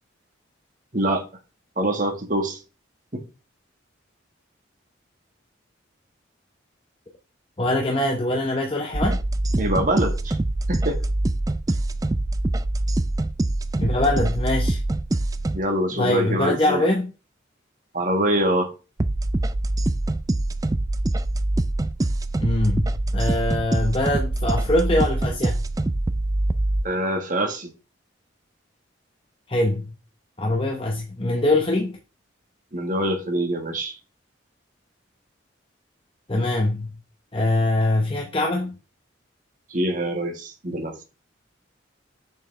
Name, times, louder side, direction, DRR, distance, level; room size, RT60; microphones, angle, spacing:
voice 1, 0.9-1.2 1.8-2.6 3.1-3.2 9.6-10.3 10.7-11.0 15.5-16.8 17.9-18.7 26.8-27.7 32.7-34.0 39.7-41.0, right 1 dB, 40° right, 1.6 m, -24 dB
voice 2, 7.6-9.2 13.8-14.8 15.9-17.1 22.4-25.6 29.5-29.9 30.4-32.0 36.3-36.9 37.3-38.8, left 1 dB, 25° left, 0.8 m, -23 dB
sound 1, 8.9-15.6 19.0-26.8, right 1 dB, 15° right, 0.3 m, -24 dB
6.9 x 6.2 x 3.3 m
head